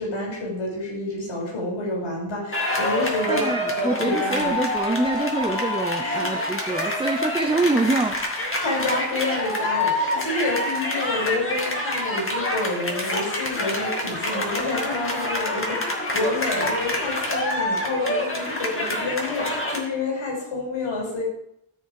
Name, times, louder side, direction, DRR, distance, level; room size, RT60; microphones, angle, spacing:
voice 1, 0.0-4.6 6.0-6.5 8.6-21.2, left 2 dB, 65° left, -2 dB, 5.4 m, -28 dB
sound 1, 2.5-19.8, left 1 dB, 25° left, 2.2 m, -27 dB
voice 2, 3.3-8.2 18.4-18.5, right 2 dB, 10° right, 4 dB, 0.7 m, -25 dB
14.0 x 7.1 x 4.8 m, 0.77 s
wide cardioid pair, 135°, 50 cm